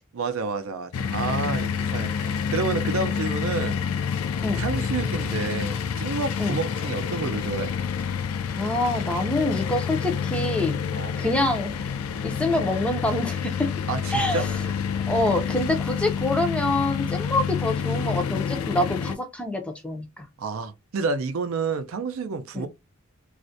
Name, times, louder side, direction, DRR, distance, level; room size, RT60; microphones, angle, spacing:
voice 1, 0.1-3.8 4.5-7.7 10.9-11.2 13.9-14.5 20.4-22.7, right 4 dB, 75° right, 0.4 m, -29 dB
sound 1, 0.9-19.1, left 7 dB, 90° left, 0.3 m, -28 dB
voice 2, 8.6-10.8 11.2-11.7 12.2-13.7 14.1-14.5 15.1-20.3 22.5-22.7, left 1 dB, 5° left, 0.5 m, -26 dB
2.4 x 2.1 x 2.5 m
head